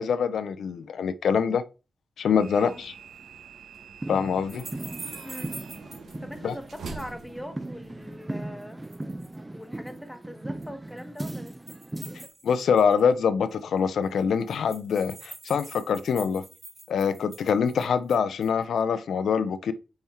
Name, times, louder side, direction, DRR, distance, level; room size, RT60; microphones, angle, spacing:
voice 1, 0.0-1.6 2.2-2.9 4.1-4.6 6.4-6.5 12.4-16.4 16.9-19.7, left 6 dB, 80° left, 0.4 m, -24 dB
sound 1, 2.4-8.2, right 5 dB, 80° right, 1.2 m, -45 dB
sound 2, 4.0-12.3, right 1 dB, 20° right, 0.5 m, -38 dB
sound 3, 4.5-6.1 6.5-7.2 8.6-9.4 9.7-10.0 10.6-13.1 13.5-13.6 13.8-13.9 14.1-18.6, right 3 dB, 40° right, 3.0 m, -45 dB
voice 2, 6.2-8.8 9.5-11.5, equal, ahead, 1.2 m, -41 dB
5.6 x 4.3 x 4.3 m
cardioid pair, 85°, 0 cm